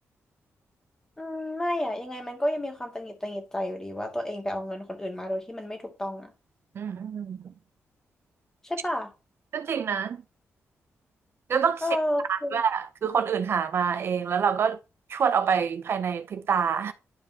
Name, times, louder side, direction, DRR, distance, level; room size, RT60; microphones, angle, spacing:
voice 1, 1.2-6.3 8.6-9.1 11.8-12.6, left 1 dB, 10° left, 1.6 m, -31 dB
voice 2, 6.8-7.4 9.5-10.2 11.5-11.8 12.3-14.8 15.1-16.9, right 7 dB, 55° right, 0.5 m, -26 dB
11.5 x 5.1 x 2.8 m
wide cardioid pair, 145°, 5 cm